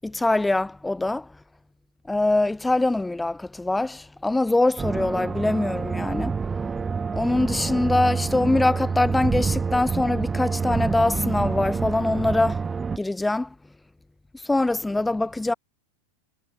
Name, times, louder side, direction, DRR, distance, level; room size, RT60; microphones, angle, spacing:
voice 1, 0.0-1.3 2.1-6.4 7.1-12.6 13.0-13.5 14.4-15.5, left 2 dB, 5° left, 7.2 m, -23 dB
sound 1, 4.8-13.0, right 5 dB, 15° right, 7.0 m, -27 dB
figure-of-eight pair, 90°, 0 cm